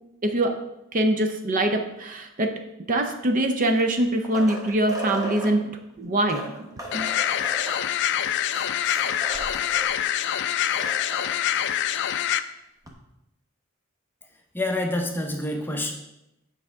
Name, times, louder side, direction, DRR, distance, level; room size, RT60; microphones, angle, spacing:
voice 1, 0.2-0.6 0.9-2.6 2.9-6.4 6.9-7.1, right 1 dB, 40° right, 5 dB, 0.5 m, -23 dB
sound 1, 3.6-5.5 6.2-9.9 10.2-10.3 10.6-11.4 12.9-13.0, equal, 15° right, 0.9 m, -36 dB
sound 2, 6.9-12.4, left 11 dB, 55° left, 0.3 m, -25 dB
voice 2, 14.5-15.9, left 1 dB, 10° left, 2 dB, 0.7 m, -27 dB
7.9 x 4.8 x 3.5 m, 0.88 s
head